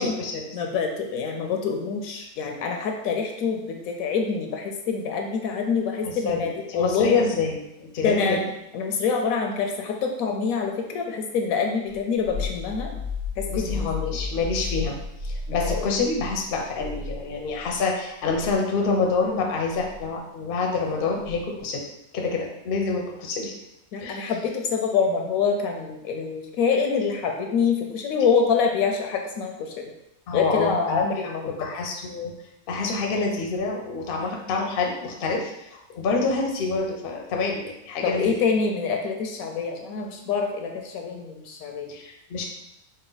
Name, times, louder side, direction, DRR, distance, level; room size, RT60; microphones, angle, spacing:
voice 1, 0.0-0.5 6.0-8.4 13.5-15.0 15.2-21.8 22.1-23.5 24.0-24.3 30.3-31.0 31.4-32.3 32.7-38.3 41.9-42.5, left 4 dB, 55° left, 0 dB, 0.7 m, -27 dB
voice 2, 0.5-7.1 8.0-12.9 13.4-14.2 15.5-15.9 23.9-29.9 30.3-31.5 38.0-41.9, left 5 dB, 75° left, 2 dB, 1.0 m, -26 dB
sound 1, 11.9-17.8 18.2-18.5 19.7-20.0 21.2-21.6, left 4 dB, 60° right, 1.3 m, -33 dB
4.2 x 2.3 x 3.8 m, 0.85 s
omnidirectional pair, 1.5 m